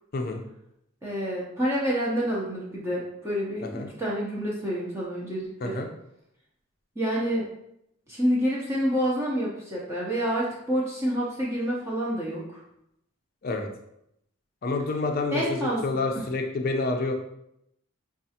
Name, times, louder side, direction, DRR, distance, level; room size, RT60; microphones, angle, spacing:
voice 1, 1.0-5.8 7.0-7.5 8.1-12.6 15.3-15.9, equal, 15° right, -6 dB, 0.6 m, -28 dB
voice 2, 14.6-17.1, left 3 dB, 40° left, 3 dB, 0.4 m, -28 dB
5.2 x 2.4 x 2.8 m, 0.79 s
head